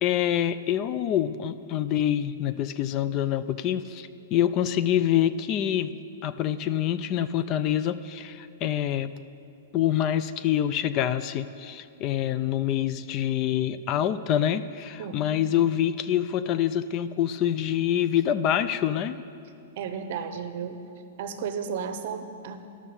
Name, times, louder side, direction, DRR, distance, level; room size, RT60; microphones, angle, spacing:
voice 1, 0.0-5.9 6.2-9.1 9.7-19.2, left 10 dB, 35° left, 13 dB, 0.3 m, -26 dB
voice 2, 15.0-15.3 19.8-20.8 21.2-22.6, right 6 dB, 60° right, 9 dB, 0.8 m, -33 dB
12.0 x 6.2 x 6.9 m, 2.5 s
hypercardioid pair, 145°, 0 cm